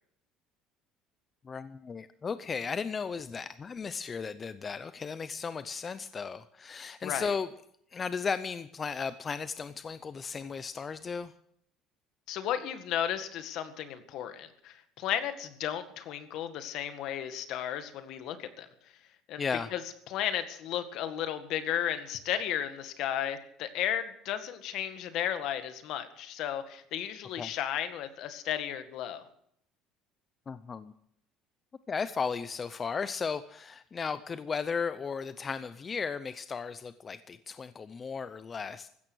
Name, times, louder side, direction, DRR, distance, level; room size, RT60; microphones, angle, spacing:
voice 1, 1.4-7.5 7.9-11.3 19.4-19.7 27.4-27.5 30.5-30.9 31.9-38.9, left 5 dB, 25° left, 13 dB, 0.6 m, -35 dB
voice 2, 7.0-7.3 12.3-18.7 19.3-19.4 19.7-19.8 20.1-29.2, left 10 dB, 60° left, 10 dB, 1.9 m, -34 dB
15.5 x 13.5 x 6.3 m, 0.69 s
cardioid pair, 135°, 0 cm